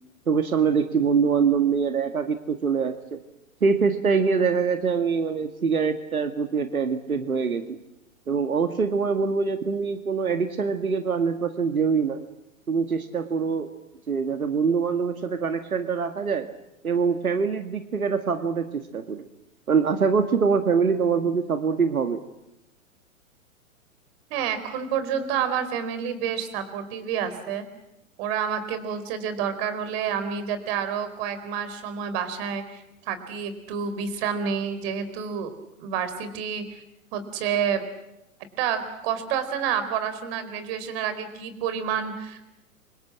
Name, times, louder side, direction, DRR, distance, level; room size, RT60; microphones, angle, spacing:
voice 1, 0.3-3.2 3.6-7.8 8.3-12.2 12.7-13.7 14.1-16.5 16.8-19.2 19.7-22.2, right 5 dB, 90° right, 8 dB, 2.0 m, -24 dB
voice 2, 24.3-27.7 28.2-35.5 35.8-36.8 37.1-37.8 38.6-42.4, right 7 dB, 45° right, 12 dB, 4.6 m, -29 dB
29.0 x 26.0 x 7.6 m, 0.91 s
hypercardioid pair, 115°, 42 cm